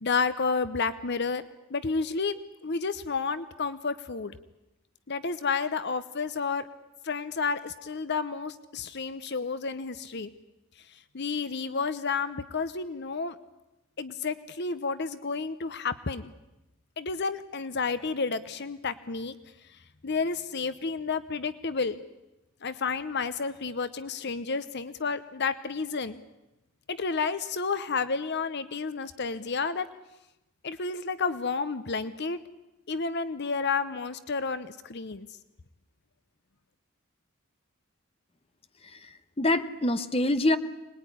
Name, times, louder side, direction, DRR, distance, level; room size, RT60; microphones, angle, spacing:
voice 1, 0.0-1.4 1.7-4.4 5.1-6.7 7.0-10.3 10.9-13.4 14.0-16.3 17.0-19.3 19.7-22.0 22.6-26.2 26.9-29.9 30.6-32.4 32.9-35.3, left 4 dB, 50° left, 13 dB, 0.8 m, -31 dB
voice 2, 38.8-40.6, left 1 dB, 25° left, 10 dB, 1.1 m, -26 dB
25.0 x 20.0 x 10.0 m, 0.97 s
head